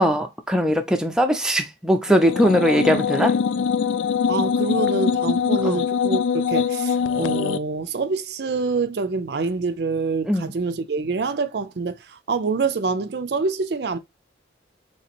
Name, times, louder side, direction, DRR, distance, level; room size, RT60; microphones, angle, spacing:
voice 1, 0.0-3.3 5.6-5.8 10.3-10.5, equal, 5° right, 0.5 m, -20 dB
sound 1, 2.1-7.6, left 6 dB, 85° left, 0.3 m, -23 dB
voice 2, 4.3-14.0, right 4 dB, 60° right, 0.4 m, -26 dB
3.3 x 2.9 x 4.2 m
head